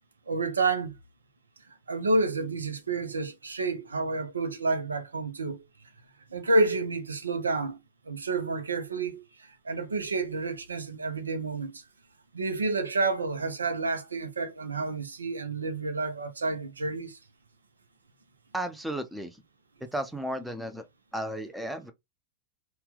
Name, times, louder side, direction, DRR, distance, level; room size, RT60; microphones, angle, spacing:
voice 1, 0.3-1.0 1.9-5.6 6.3-7.8 8.1-11.8 12.3-17.2, right 3 dB, 75° right, 0.7 m, -29 dB
voice 2, 18.5-19.4 19.9-20.9 21.1-21.9, right 1 dB, 5° right, 0.7 m, -34 dB
4.2 x 2.4 x 3.5 m
figure-of-eight pair, 90°, 0 cm